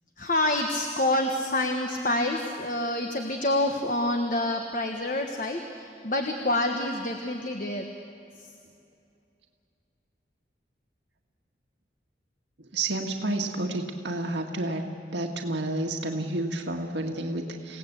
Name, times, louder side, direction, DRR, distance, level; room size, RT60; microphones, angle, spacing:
voice 1, 0.2-7.9 8.4-8.5, left 1 dB, 45° left, 3 dB, 1.4 m, -27 dB
voice 2, 12.6-17.8, right 2 dB, 80° right, 2 dB, 1.8 m, -30 dB
28.5 x 17.5 x 8.1 m, 2.6 s
head